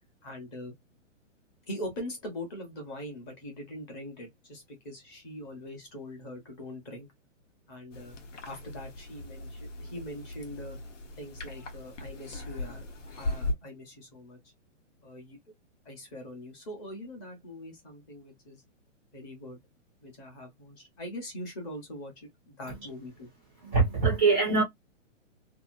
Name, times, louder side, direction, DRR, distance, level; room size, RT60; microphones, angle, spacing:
voice 1, 0.2-0.7 1.7-7.1 7.7-8.2 8.4-10.8 11.2-12.9 13.2-14.4 15.0-15.4 15.8-18.6 19.1-19.6 20.0-23.3, left 1 dB, 20° left, 0.9 m, -42 dB
sound 1, 7.9-13.5, left 2 dB, 70° left, 1.1 m, -38 dB
voice 2, 23.6-24.6, right 4 dB, 10° right, 0.5 m, -23 dB
2.8 x 2.6 x 2.5 m
hypercardioid pair, 170°, 38 cm